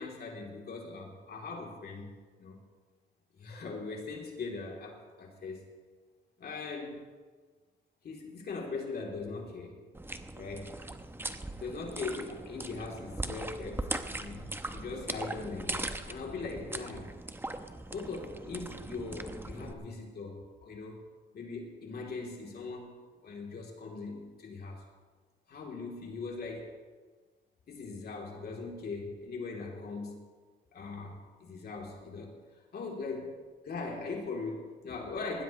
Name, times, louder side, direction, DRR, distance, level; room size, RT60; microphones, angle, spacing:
voice 1, 0.0-2.1 2.4-2.6 3.3-5.6 6.4-7.0 8.0-9.8 10.3-10.8 11.6-17.1 17.9-21.0 21.3-24.8 25.5-26.8 27.7-30.2 30.7-33.4 33.6-35.4, left 4 dB, 55° left, -1 dB, 3.2 m, -40 dB
sound 1, 9.9-19.7, right 2 dB, 10° right, 0.9 m, -40 dB
20.0 x 15.5 x 3.2 m, 1.5 s
cardioid pair, 90°, 20 cm